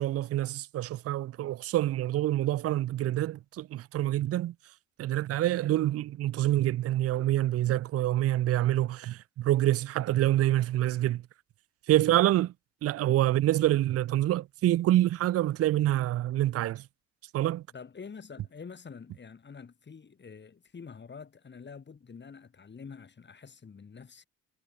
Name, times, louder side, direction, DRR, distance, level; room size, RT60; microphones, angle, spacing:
voice 1, 0.0-4.5 5.0-11.2 11.9-12.5 12.8-16.8 17.3-17.6, right 14 dB, 50° right, 0.5 m, -26 dB
voice 2, 17.7-24.3, left 5 dB, 35° left, 6.1 m, -47 dB
supercardioid pair, 80°, 32 cm